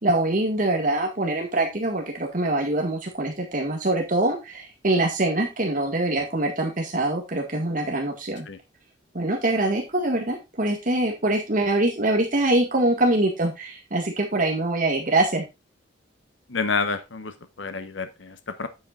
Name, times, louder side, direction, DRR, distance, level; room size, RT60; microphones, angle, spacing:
voice 1, 0.0-8.4 9.1-15.4, right 2 dB, 45° right, 1 dB, 1.8 m, -24 dB
voice 2, 16.5-17.3 17.6-18.7, left 4 dB, 75° left, 10 dB, 1.0 m, -28 dB
9.5 x 7.7 x 2.5 m, 0.25 s
head